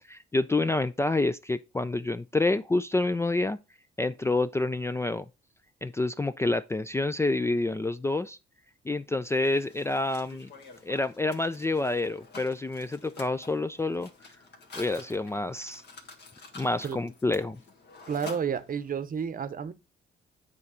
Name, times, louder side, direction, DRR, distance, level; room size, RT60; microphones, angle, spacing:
voice 1, 0.0-3.6 4.0-5.3 5.8-8.4 8.9-10.5 10.8-14.1 14.7-15.8 16.6-17.6, left 2 dB, 15° left, 0.3 m, -28 dB
Mechanisms, 9.2-19.0, left 3 dB, 60° left, 1.7 m, -48 dB
voice 2, 18.1-19.7, right 7 dB, 45° right, 0.8 m, -31 dB
8.3 x 3.2 x 4.9 m
cardioid pair, 90°, 20 cm